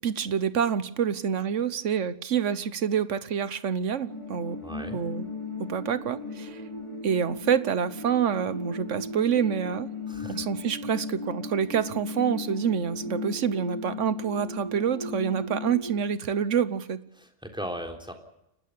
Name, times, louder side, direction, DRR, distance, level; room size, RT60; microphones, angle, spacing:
voice 1, 0.0-4.6 4.9-5.3 5.6-6.6 7.0-9.9 10.3-17.0, right 7 dB, 85° right, 15 dB, 1.4 m, -27 dB
sound 1, 4.1-16.0, left 3 dB, 25° left, 5.2 m, -37 dB
voice 2, 4.6-5.0 10.1-10.5 17.1-18.1, equal, 5° right, 4 dB, 3.5 m, -37 dB
30.0 x 13.0 x 8.5 m, 0.85 s
omnidirectional pair, 1.2 m